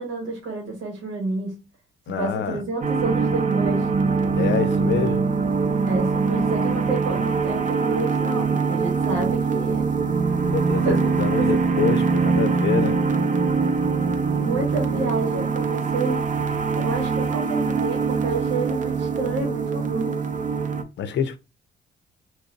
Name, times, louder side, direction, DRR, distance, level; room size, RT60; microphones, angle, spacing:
voice 1, 0.0-1.6 2.2-3.9 5.8-9.9 10.7-11.1 11.3-11.6 14.4-16.3 16.7-20.2, right 3 dB, 80° right, 1.3 m, -29 dB
voice 2, 2.1-2.6 4.4-5.2 10.5-13.0 21.0-21.4, left 7 dB, 65° left, 0.6 m, -26 dB
sound 1, 2.8-20.8, right 4 dB, 40° right, 0.6 m, -23 dB
2.9 x 2.7 x 3.9 m
cardioid pair, 90°, 20 cm